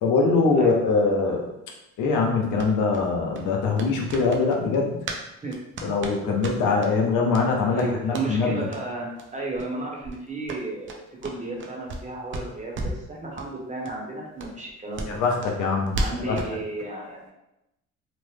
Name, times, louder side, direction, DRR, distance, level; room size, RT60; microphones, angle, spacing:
voice 1, 0.0-1.4 2.0-5.0 5.8-8.6 15.1-15.9 16.3-16.4, left 4 dB, 90° left, 0 dB, 0.7 m, -22 dB
sound 1, 2.5-5.2 5.5-6.9 7.3-7.4 7.7-8.3 8.7-8.8 9.2-9.3 9.5-9.7 10.0-12.1 12.3-13.1 13.4-13.5 13.8-13.9 14.4-16.5, right 2 dB, 40° right, 0.5 m, -34 dB
voice 2, 7.7-15.2 15.9-17.3, right 2 dB, 25° right, -2 dB, 0.9 m, -33 dB
3.0 x 2.0 x 3.2 m, 0.89 s
cardioid pair, 90°, 30 cm